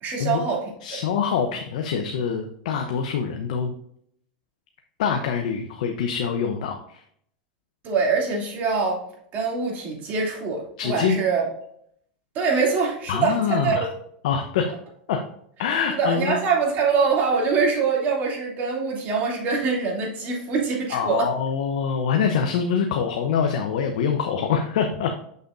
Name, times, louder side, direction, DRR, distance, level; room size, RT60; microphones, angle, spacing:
voice 1, 0.0-1.0 7.8-9.0 9.3-11.4 12.3-13.9 15.9-21.3, right 5 dB, 45° right, -1 dB, 2.7 m, -24 dB
voice 2, 0.8-3.7 5.0-7.0 10.8-11.2 13.1-13.9 14.2-14.7 15.1-15.2 15.6-16.4 20.9-25.2, left 6 dB, 70° left, 5 dB, 0.7 m, -25 dB
6.9 x 6.4 x 2.6 m, 0.68 s
hypercardioid pair, 110°, 4 cm